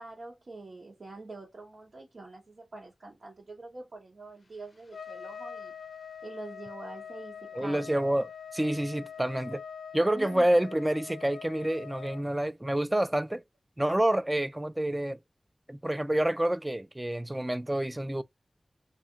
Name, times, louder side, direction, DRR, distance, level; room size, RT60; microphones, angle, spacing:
voice 1, 0.0-5.7 6.2-7.9 10.1-10.5, right 2 dB, 75° right, 0.9 m, -45 dB
Trumpet, 4.9-12.2, left 7 dB, 75° left, 0.4 m, -44 dB
voice 2, 7.5-9.6 9.9-13.4 13.8-15.2 15.7-18.2, right 1 dB, 20° right, 0.3 m, -28 dB
2.8 x 2.4 x 2.4 m
wide cardioid pair, 60°, 0 cm